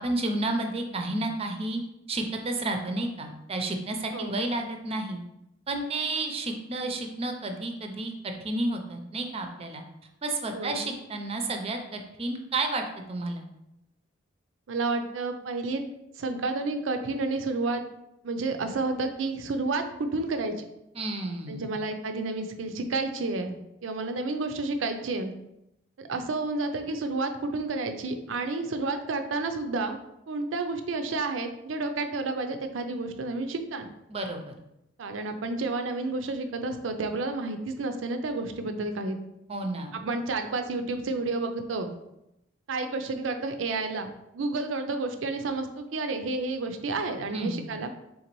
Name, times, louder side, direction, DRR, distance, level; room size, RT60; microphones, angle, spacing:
voice 1, 0.0-1.8 2.1-5.2 5.7-9.8 10.2-13.4 20.9-21.8 34.1-34.5 39.5-39.9 47.3-47.7, right 2 dB, 30° right, 5 dB, 0.5 m, -31 dB
voice 2, 14.7-15.8 16.2-17.8 18.2-20.6 21.5-23.5 23.8-25.3 26.0-30.0 30.3-33.9 35.0-39.2 39.9-42.0 42.7-44.1 44.3-47.9, right 3 dB, 80° right, 7 dB, 0.5 m, -30 dB
3.9 x 3.7 x 3.0 m, 0.85 s
head